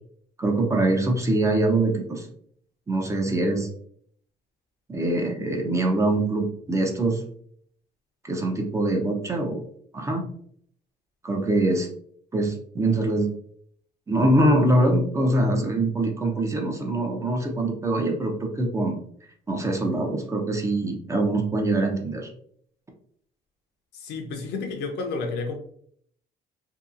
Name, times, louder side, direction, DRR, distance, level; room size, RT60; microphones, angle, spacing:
voice 1, 0.4-2.3 2.9-3.7 4.9-7.2 8.2-9.6 9.9-10.2 11.2-11.9 12.3-13.3 14.1-19.0 19.5-22.3, right 2 dB, 15° right, 1 dB, 0.5 m, -23 dB
voice 2, 23.9-25.6, left 3 dB, 80° left, 3 dB, 0.6 m, -31 dB
2.7 x 2.3 x 2.4 m, 0.63 s
cardioid pair, 110°, 17 cm